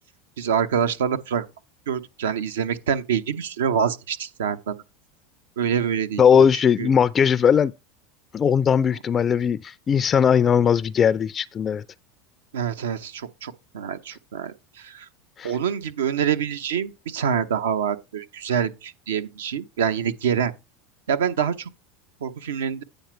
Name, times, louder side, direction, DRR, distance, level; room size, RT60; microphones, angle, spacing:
voice 1, 0.4-1.5 1.9-4.8 5.6-6.4 6.8-6.9 12.5-15.1 15.4-20.5 21.1-21.7 22.2-22.8, right 8 dB, 80° right, 0.8 m, -26 dB
voice 2, 6.2-7.7 8.3-11.8 15.4-15.5, left 7 dB, 30° left, 0.3 m, -19 dB
9.0 x 5.1 x 4.5 m
hypercardioid pair, 90°, 0 cm